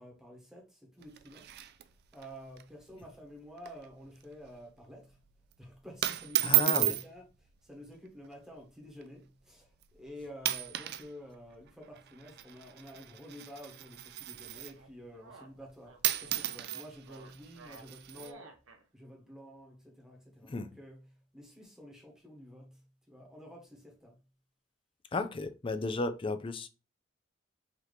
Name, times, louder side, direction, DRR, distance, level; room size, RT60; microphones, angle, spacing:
voice 1, 0.0-1.5 2.1-5.2 5.6-18.5 18.9-24.2, equal, 5° right, 1.1 m, -50 dB
sound 1, 1.0-2.3 2.6-2.7 3.0-3.2 3.6-3.9 4.2-4.5 5.3-5.5 6.0-7.1 8.1-8.3 9.0-9.1 9.8-10.0 10.4-11.1 11.3-14.9 15.7-15.8 16.0-18.3, right 16 dB, 55° right, 0.4 m, -33 dB
voice 2, 6.4-6.9 20.5-20.7 25.1-26.7, left 3 dB, 25° left, 0.4 m, -34 dB
sound 2, 14.7-18.8, right 3 dB, 75° right, 0.7 m, -54 dB
4.0 x 2.8 x 3.2 m
head